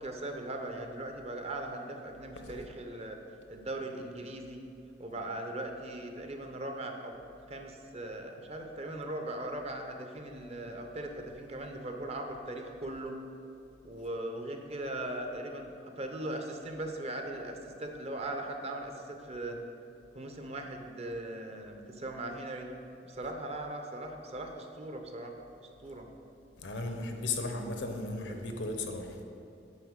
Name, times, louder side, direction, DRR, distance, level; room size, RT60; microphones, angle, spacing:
voice 1, 0.0-3.2 3.5-4.6 5.0-7.1 7.5-13.2 13.8-19.6 20.1-22.7 23.0-26.1, right 1 dB, 35° right, 4 dB, 0.7 m, -39 dB
voice 2, 26.6-29.1, left 3 dB, 80° left, 5 dB, 0.9 m, -35 dB
8.4 x 4.3 x 6.5 m, 2.6 s
head